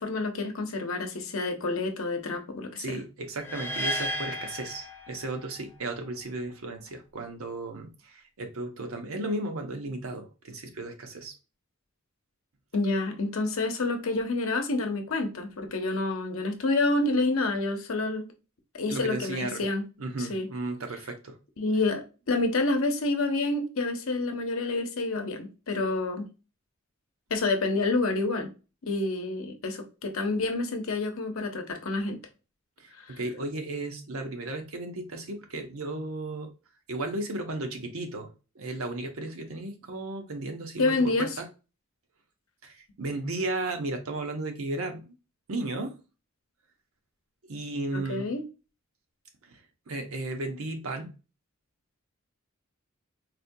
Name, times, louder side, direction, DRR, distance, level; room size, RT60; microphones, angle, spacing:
voice 1, 0.0-3.0 12.7-18.3 18.7-19.9 20.2-20.5 21.6-26.3 27.3-28.5 28.8-32.2 33.0-33.2 40.8-41.3 47.9-48.4, left 2 dB, 70° left, 0.7 m, -28 dB
voice 2, 2.8-11.3 18.9-19.6 20.0-21.4 32.8-36.5 36.9-41.5 42.6-45.1 45.5-46.0 47.5-48.3 49.5-49.6 49.9-51.1, right 2 dB, 75° right, 0.7 m, -34 dB
sound 1, 3.4-5.6, equal, 10° left, 0.3 m, -33 dB
4.1 x 2.2 x 2.6 m
head